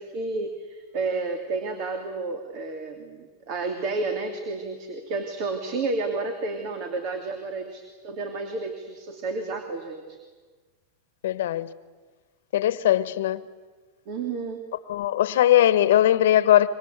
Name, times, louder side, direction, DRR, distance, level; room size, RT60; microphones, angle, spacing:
voice 1, 0.0-10.2 14.1-14.6, right 3 dB, 50° right, 6 dB, 2.8 m, -31 dB
voice 2, 11.2-11.7 12.5-13.4 14.9-16.7, left 12 dB, 80° left, 15 dB, 1.3 m, -20 dB
27.0 x 23.5 x 8.2 m, 1.4 s
supercardioid pair, 140°, 0 cm